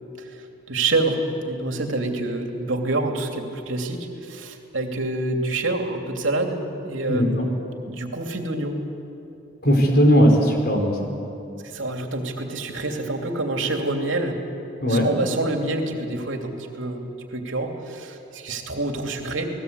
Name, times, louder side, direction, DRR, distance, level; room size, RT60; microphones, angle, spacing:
voice 1, 0.2-7.6 7.9-8.8 11.6-14.4 14.9-19.5, right 2 dB, 85° right, 3 dB, 2.9 m, -27 dB
voice 2, 9.6-11.2 14.8-15.1, equal, 55° left, 2 dB, 5.1 m, -18 dB
29.5 x 19.5 x 8.3 m, 2.7 s
head